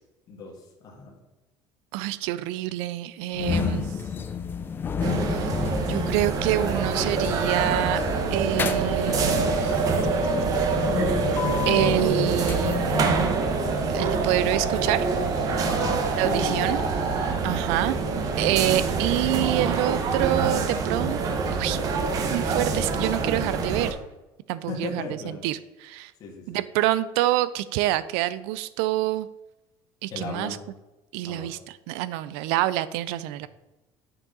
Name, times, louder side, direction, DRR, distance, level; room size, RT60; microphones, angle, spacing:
voice 1, 0.3-1.2 15.7-16.7 17.3-17.6 24.6-25.5 26.2-26.6 30.1-30.6 31.3-31.5, left 3 dB, 40° left, -1 dB, 1.7 m, -36 dB
voice 2, 1.9-3.9 5.3-5.6 5.9-8.0 8.3-9.8 10.6-11.0 11.7-13.0 13.9-15.1 16.2-16.8 17.4-18.0 18.4-21.2 21.6-21.8 22.3-24.0 24.5-25.0 25.4-26.1 26.5-29.3 30.0-30.6 31.1-31.6 31.9-33.5, right 15 dB, 90° right, 16 dB, 0.4 m, -26 dB
sound 1, 3.3-13.5, left 6 dB, 20° left, 0.5 m, -31 dB
sound 2, 5.0-23.9, right 4 dB, 40° right, 0.9 m, -26 dB
sound 3, 5.2-17.3, right 3 dB, 70° right, 1.4 m, -30 dB
7.6 x 6.2 x 3.9 m, 1.0 s
cardioid pair, 155°, 9 cm